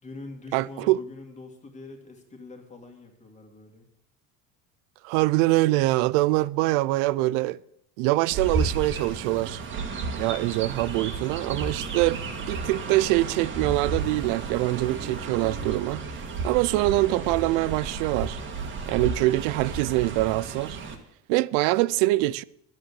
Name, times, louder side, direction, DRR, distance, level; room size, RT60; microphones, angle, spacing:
voice 1, 0.0-3.9, left 2 dB, 20° left, 2.4 m, -44 dB
voice 2, 0.5-1.0 5.0-7.6 8.0-9.6 10.1-12.2 12.5-16.1 16.4-18.4 18.9-20.8 21.3-22.4, right 18 dB, 90° right, 0.5 m, -24 dB
Chirp tweet, 8.3-21.0, right 4 dB, 35° right, 1.8 m, -33 dB
11.5 x 7.8 x 8.5 m
cardioid pair, 150°, 36 cm